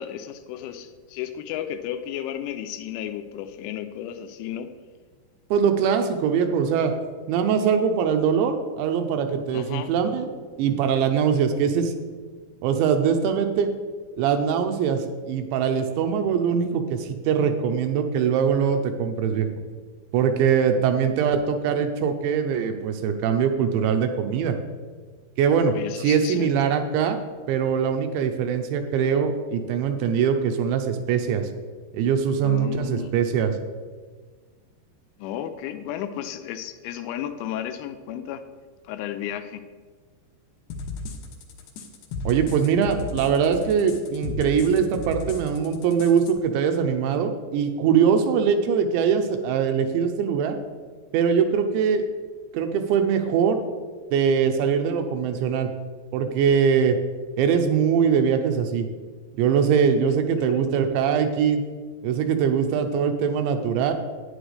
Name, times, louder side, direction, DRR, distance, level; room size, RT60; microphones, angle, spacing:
voice 1, 0.0-4.7 9.5-9.9 25.7-26.5 32.4-33.1 35.2-38.4 38.8-39.6, left 10 dB, 90° left, 8 dB, 3.1 m, -33 dB
voice 2, 5.5-6.9 7.3-10.3 10.6-11.9 12.6-13.7 14.2-19.5 20.1-24.5 25.4-27.2 27.5-31.5 31.9-33.5 42.3-50.6 51.1-52.1 52.5-53.6 54.1-55.7 56.1-57.0 57.4-58.9 59.4-61.6 62.0-63.9, right 7 dB, 85° right, 6 dB, 2.9 m, -22 dB
sound 1, 40.7-46.3, left 2 dB, 75° left, 2.8 m, -34 dB
11.5 x 9.7 x 3.3 m, 1.5 s
omnidirectional pair, 5.5 m